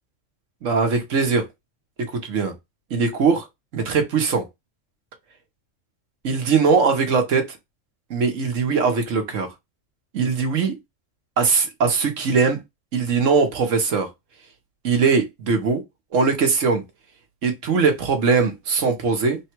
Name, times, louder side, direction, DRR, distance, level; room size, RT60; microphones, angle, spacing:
voice 1, 0.6-1.4 2.0-2.5 2.9-3.4 3.7-4.4 6.2-7.6 8.1-9.5 10.1-10.8 11.4-12.6 12.9-14.1 14.8-15.8 16.1-16.8 17.4-19.4, right 5 dB, 70° right, 1.3 m, -20 dB
3.7 x 2.3 x 4.4 m
omnidirectional pair, 1.3 m